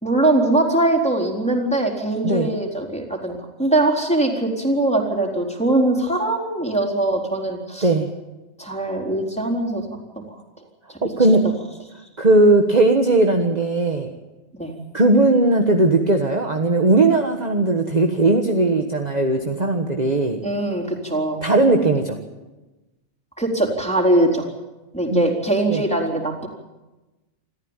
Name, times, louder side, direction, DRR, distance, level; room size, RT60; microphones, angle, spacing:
voice 1, 0.0-7.9 8.6-9.9 10.3-10.4 10.9-11.0 11.3-11.5 14.6-14.7 20.4-21.4 23.4-24.5 24.9-26.5, right 2 dB, 5° left, 1 dB, 4.0 m, -21 dB
voice 2, 11.0-11.5 12.2-14.1 14.9-20.4 21.4-22.2 25.1-25.2 25.7-25.8, right 2 dB, 30° right, 4 dB, 1.5 m, -18 dB
27.5 x 14.0 x 9.0 m, 1.1 s
omnidirectional pair, 1.4 m